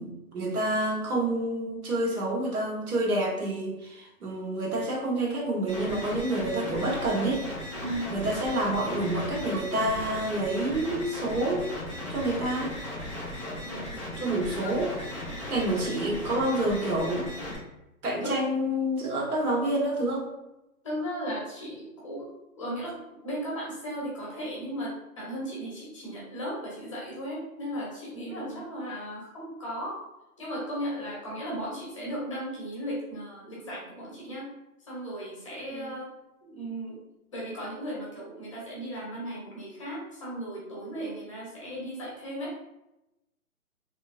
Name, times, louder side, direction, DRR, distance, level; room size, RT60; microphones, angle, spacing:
voice 1, 0.0-7.4 8.1-11.6 12.1-12.8 14.2-14.9 15.5-17.3 18.0-20.3 28.2-28.6 35.7-35.9, right 1 dB, 75° right, -2 dB, 1.4 m, -28 dB
sound 1, 5.7-17.6, left 1 dB, 20° right, 0.4 m, -37 dB
voice 2, 7.8-8.1 13.6-13.9 18.2-18.4 20.8-30.0 30.4-34.5 34.9-36.1 36.4-37.0 37.3-42.6, equal, 20° left, -5 dB, 0.7 m, -36 dB
3.2 x 2.9 x 2.5 m, 0.93 s
hypercardioid pair, 165°, 44 cm